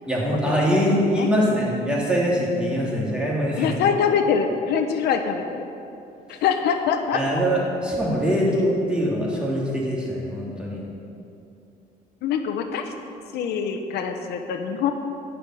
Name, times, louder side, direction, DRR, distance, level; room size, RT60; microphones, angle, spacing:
voice 1, 0.1-3.8 7.1-10.8, equal, 5° right, -5 dB, 3.2 m, -23 dB
voice 2, 3.6-5.7 6.3-7.2 12.2-12.9 13.3-14.9, left 7 dB, 75° left, 6 dB, 0.9 m, -24 dB
12.0 x 5.7 x 9.1 m, 2.7 s
cardioid pair, 110°, 17 cm